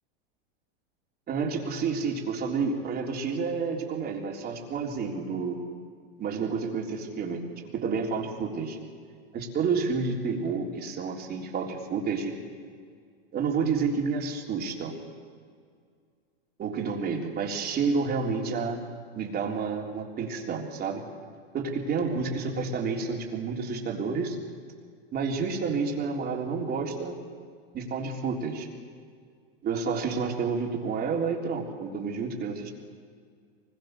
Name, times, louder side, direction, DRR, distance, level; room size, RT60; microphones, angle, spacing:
voice 1, 1.3-5.6 6.2-7.4 7.7-8.8 9.3-12.3 13.3-14.9 16.6-18.8 19.1-21.0 21.5-24.4 25.1-27.2 27.7-28.7 29.6-32.7, right 5 dB, 30° right, 0 dB, 3.8 m, -30 dB
24.0 x 21.5 x 6.7 m, 2.1 s
hypercardioid pair, 120°, 31 cm